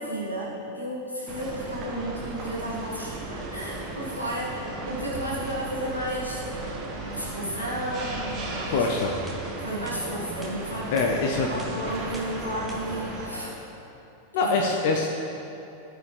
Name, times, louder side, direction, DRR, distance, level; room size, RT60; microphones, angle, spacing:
voice 1, 0.0-8.9 9.6-11.2 11.5-13.6 14.4-14.7, right 1 dB, 85° left, -5 dB, 1.5 m, -33 dB
sound 1, 1.3-13.3, right 2 dB, 30° right, 1.4 m, -35 dB
voice 2, 8.7-9.2 10.9-11.6 14.3-15.1, left 4 dB, 50° left, 1 dB, 0.5 m, -24 dB
sound 2, 9.3-9.4 9.9-10.0 10.4-10.6 11.0-11.1 11.6-11.7 12.1-12.3 12.7-12.8, right 2 dB, 10° right, 1.1 m, -45 dB
13.5 x 4.7 x 3.4 m, 2.9 s
figure-of-eight pair, 90°, 0 cm